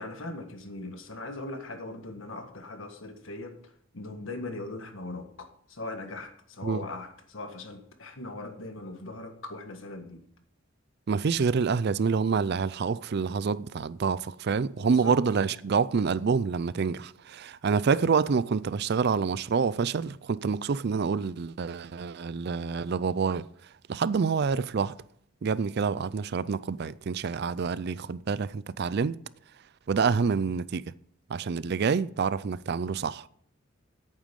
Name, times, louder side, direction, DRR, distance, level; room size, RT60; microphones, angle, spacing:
voice 1, 0.0-3.6 3.9-10.2 14.8-15.2, left 2 dB, 70° left, 1.6 m, -40 dB
voice 2, 11.1-23.5 23.9-25.0 25.4-29.2 29.9-30.9 31.3-33.3, right 5 dB, 55° right, 0.4 m, -27 dB
10.5 x 9.0 x 5.3 m
head